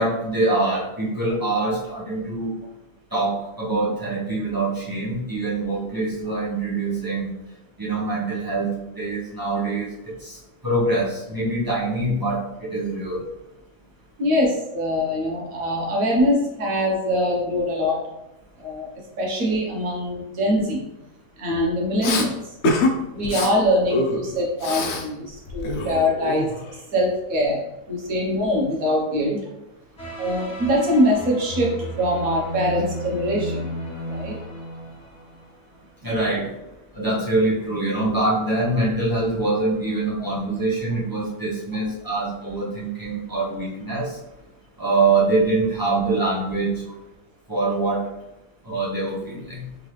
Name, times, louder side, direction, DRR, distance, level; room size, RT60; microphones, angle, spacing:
voice 1, 0.0-2.5 3.1-7.3 7.8-13.2 36.0-36.5 36.9-44.2 44.8-46.8 47.5-48.1 48.6-49.7, right 2 dB, 15° right, -8 dB, 0.9 m, -24 dB
voice 2, 14.2-18.1 18.6-18.9 19.2-20.8 21.4-22.4 23.1-26.5 26.9-29.4 30.2-33.7 34.0-34.4, equal, 55° right, -3 dB, 1.5 m, -23 dB
Respiratory sounds, 22.0-22.3 22.6-22.9 23.2-23.5 23.9-25.1 25.3-26.8, left 2 dB, 70° left, 0.6 m, -25 dB
sound 1, 30.0-35.7, equal, 45° left, 1.4 m, -33 dB
3.7 x 3.7 x 3.2 m, 0.90 s
omnidirectional pair, 1.8 m